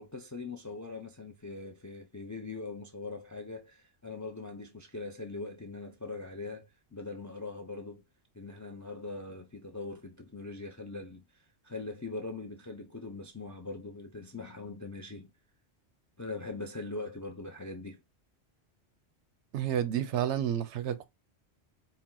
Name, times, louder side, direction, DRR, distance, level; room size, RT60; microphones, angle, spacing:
voice 1, 0.0-8.0 8.3-15.3 16.2-18.0, left 3 dB, 30° left, 0.3 m, -41 dB
voice 2, 19.5-21.1, right 10 dB, 85° right, 0.9 m, -30 dB
4.3 x 2.1 x 3.6 m
omnidirectional pair, 1.1 m